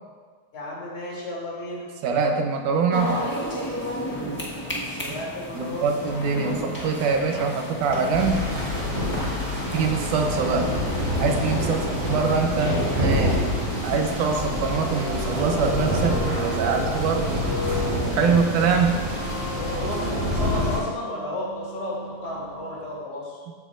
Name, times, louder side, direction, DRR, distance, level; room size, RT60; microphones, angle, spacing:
voice 1, 0.5-1.9 5.0-6.0 11.5-11.9 19.6-23.4, left 1 dB, 75° left, -6 dB, 4.6 m, -33 dB
voice 2, 2.0-3.2 5.1-5.2 5.5-8.5 9.7-10.8 11.2-13.5 13.8-17.4 18.2-19.0, right 5 dB, 85° right, 3 dB, 2.5 m, -24 dB
sound 1, 2.9-19.6, equal, 20° left, 0.5 m, -34 dB
sound 2, 8.1-20.8, left 1 dB, 20° right, 3.2 m, -27 dB
sound 3, 14.2-22.9, right 1 dB, 55° right, 2.8 m, -35 dB
16.0 x 8.8 x 2.7 m, 1.5 s
omnidirectional pair, 3.4 m